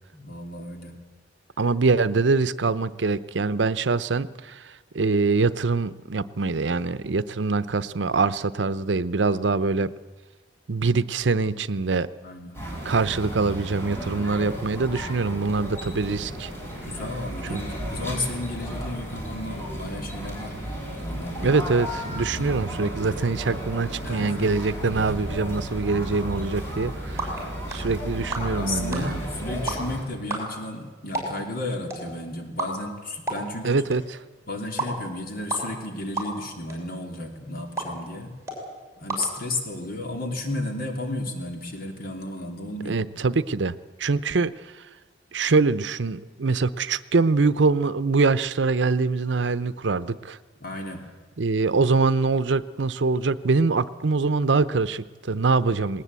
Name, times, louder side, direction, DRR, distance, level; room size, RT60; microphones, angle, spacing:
voice 1, 0.1-1.0 12.2-12.6 16.6-20.6 21.0-21.6 24.0-24.5 28.6-33.8 34.5-38.3 39.0-43.0 50.6-51.1, left 2 dB, 55° left, 4 dB, 3.0 m, -33 dB
voice 2, 1.6-9.9 10.7-12.1 12.8-16.5 17.5-17.6 21.4-27.4 27.7-29.2 33.6-34.2 42.9-44.5 45.3-50.4 51.4-56.0, right 4 dB, 75° right, 15 dB, 0.7 m, -24 dB
sound 1, 12.5-30.0, equal, 15° left, 6.4 m, -33 dB
sound 2, 26.7-40.0, right 2 dB, 15° right, 5.9 m, -36 dB
19.5 x 19.5 x 8.2 m, 1.3 s
head